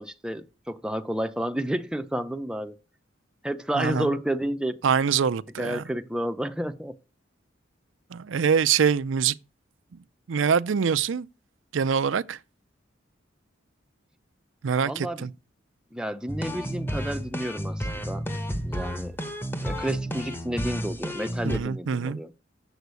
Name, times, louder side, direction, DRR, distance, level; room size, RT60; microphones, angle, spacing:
voice 1, 0.0-2.8 3.4-4.8 5.6-7.0 14.8-15.3 15.9-18.3 18.6-19.2 19.6-22.3, right 1 dB, 5° right, 0.5 m, -31 dB
voice 2, 3.8-4.1 4.8-5.8 8.1-9.4 10.3-11.3 11.7-12.4 14.6-15.3 21.4-22.2, right 6 dB, 80° right, 0.5 m, -24 dB
sound 1, 16.3-21.6, equal, 10° left, 0.9 m, -31 dB
8.0 x 7.1 x 8.2 m
head